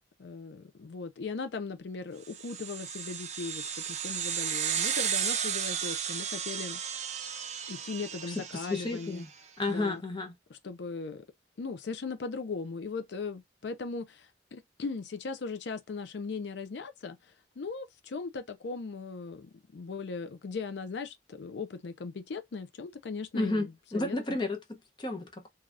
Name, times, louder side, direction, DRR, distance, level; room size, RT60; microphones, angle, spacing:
voice 1, 0.2-3.6 3.9-6.8 7.7-9.2 9.7-10.0 10.5-11.2 11.6-17.2 17.6-24.4, left 4 dB, 75° left, 0.5 m, -38 dB
Machine Pass-by, 2.3-9.1, right 8 dB, 40° right, 0.5 m, -34 dB
voice 2, 8.3-9.3 9.6-10.3 23.3-25.5, left 2 dB, 25° left, 0.7 m, -32 dB
3.3 x 2.3 x 2.4 m
head